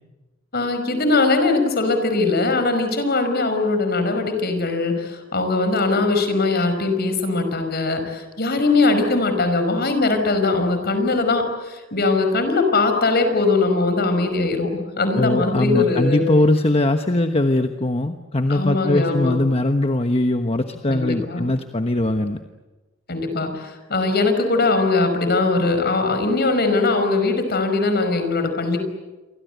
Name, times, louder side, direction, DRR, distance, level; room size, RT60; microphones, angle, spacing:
voice 1, 0.5-16.2 18.5-19.3 20.9-21.5 23.1-28.8, left 3 dB, 55° left, 7 dB, 5.4 m, -21 dB
voice 2, 15.1-22.4, left 1 dB, 30° left, 6 dB, 1.2 m, -20 dB
29.0 x 24.0 x 8.1 m, 1.2 s
head